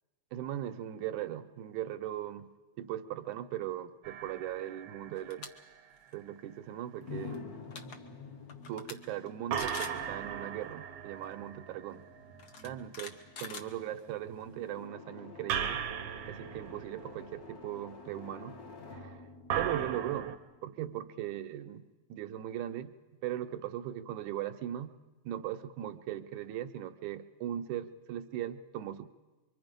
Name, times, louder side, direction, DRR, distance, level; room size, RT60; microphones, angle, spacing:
voice 1, 0.3-2.5 2.8-5.5 6.1-7.4 8.7-12.0 12.6-15.8 16.3-18.6 18.9-19.2 19.6-20.3 20.6-22.9 23.2-25.0 25.2-29.1, right 12 dB, 80° right, 9 dB, 2.3 m, -39 dB
sound 1, 4.0-5.8 9.5-12.7 15.5-17.7 19.5-20.4, right 8 dB, 65° right, 1.6 m, -38 dB
sound 2, 5.1-5.5 5.9-6.1 7.3-7.4 7.6-8.0 8.5-8.9 9.3-9.4 9.6-10.0 11.2-11.3 12.4-14.2, left 5 dB, 70° left, 0.9 m, -44 dB
sound 3, 7.0-20.8, left 4 dB, 45° left, 1.3 m, -49 dB
25.5 x 24.0 x 5.2 m, 1.2 s
omnidirectional pair, 3.4 m